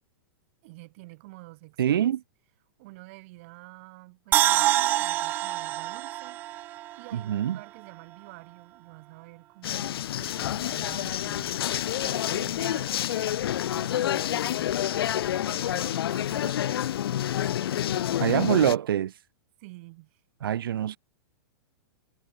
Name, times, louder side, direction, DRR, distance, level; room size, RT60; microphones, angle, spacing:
voice 1, 0.6-2.1 2.8-11.5 12.0-13.0 13.7-14.7 15.4-16.8 17.0-18.6 19.6-20.2, right 24 dB, 35° right, 4.5 m, -48 dB
voice 2, 1.8-2.2 7.1-7.6 18.2-19.2 20.4-21.0, right 10 dB, 70° right, 2.2 m, -25 dB
sound 1, 4.3-7.5 7.9-8.0, right 15 dB, 15° right, 0.4 m, -26 dB
sound 2, 9.6-18.7, left 11 dB, 90° left, 0.4 m, -28 dB
supercardioid pair, 175°, 12 cm